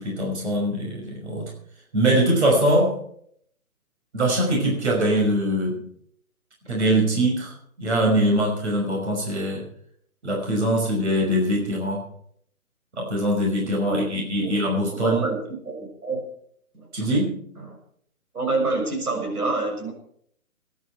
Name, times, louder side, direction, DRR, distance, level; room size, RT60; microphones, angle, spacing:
voice 1, 0.0-1.5 1.9-3.0 4.1-5.8 6.7-9.7 10.2-12.1 13.0-15.2 16.9-17.4, right 1 dB, 50° right, -1 dB, 5.6 m, -22 dB
voice 2, 14.9-16.3 16.7-17.1 17.6-17.8 18.3-19.9, right 3 dB, 90° right, 2 dB, 6.8 m, -27 dB
22.0 x 11.0 x 4.6 m, 0.65 s
hypercardioid pair, 175°, 43 cm